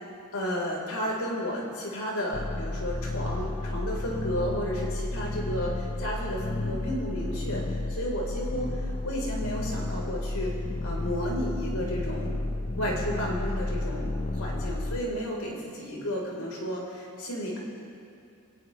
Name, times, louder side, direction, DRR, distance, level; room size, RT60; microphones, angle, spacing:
voice 1, 0.3-10.5 10.8-12.3 12.8-17.6, equal, 85° left, -2 dB, 4.2 m, -32 dB
sound 1, 2.3-15.0, left 2 dB, 25° left, 0.5 m, -32 dB
21.0 x 19.0 x 3.3 m, 2.6 s
head